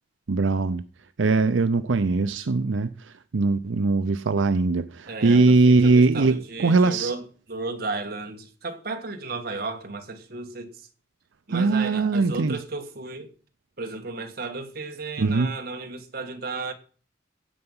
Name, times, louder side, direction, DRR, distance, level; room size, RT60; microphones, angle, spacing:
voice 1, 0.3-0.8 1.2-2.9 3.3-7.1 11.5-12.6 15.2-15.5, right 3 dB, 85° right, 0.6 m, -21 dB
voice 2, 5.1-10.9 11.5-13.3 13.8-16.7, right 3 dB, 55° right, 1.8 m, -34 dB
15.5 x 7.9 x 5.5 m
head